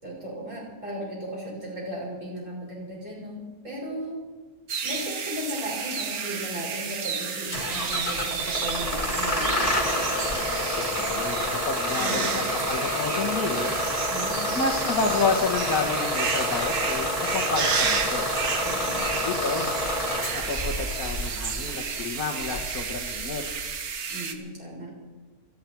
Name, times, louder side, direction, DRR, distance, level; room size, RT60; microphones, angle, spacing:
voice 1, 0.0-4.2 4.8-9.6 12.0-12.4 14.1-14.5 17.6-17.7 18.6-19.0 24.1-24.9, equal, 50° right, -5 dB, 6.4 m, -36 dB
sound 1, 4.7-24.3, right 6 dB, 70° right, 1.7 m, -31 dB
Bus / Engine starting, 7.5-23.7, left 1 dB, 20° left, 2.2 m, -29 dB
voice 2, 10.7-13.8 14.6-18.3 19.0-19.7 20.3-23.4, left 4 dB, 75° left, -3 dB, 2.0 m, -30 dB
28.5 x 10.5 x 4.6 m, 1.4 s
omnidirectional pair, 1.6 m